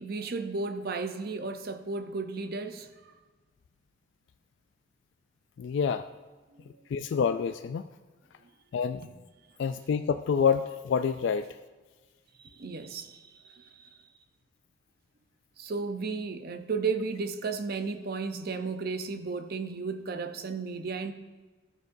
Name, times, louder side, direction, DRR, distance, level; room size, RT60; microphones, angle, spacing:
voice 1, 0.0-2.9 9.0-9.1 12.4-13.9 15.6-21.1, right 4 dB, 50° right, 0.6 m, -34 dB
voice 2, 5.6-6.0 6.9-7.9 8.7-9.0 9.6-11.5, left 6 dB, 65° left, 0.3 m, -27 dB
14.0 x 6.5 x 2.6 m
head